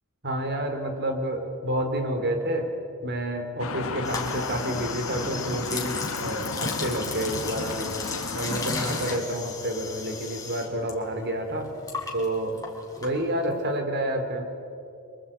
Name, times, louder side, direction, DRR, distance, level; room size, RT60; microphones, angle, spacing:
voice 1, 0.2-2.7 3.0-8.1 8.3-11.7 12.1-12.6 13.0-14.4, right 1 dB, 50° right, 6 dB, 3.7 m, -29 dB
sound 1, 3.6-9.2, left 4 dB, 65° left, 1.3 m, -34 dB
sound 2, 4.0-10.9 11.2-13.6, left 4 dB, 15° left, 4.3 m, -35 dB
27.0 x 24.5 x 8.9 m, 2.6 s
head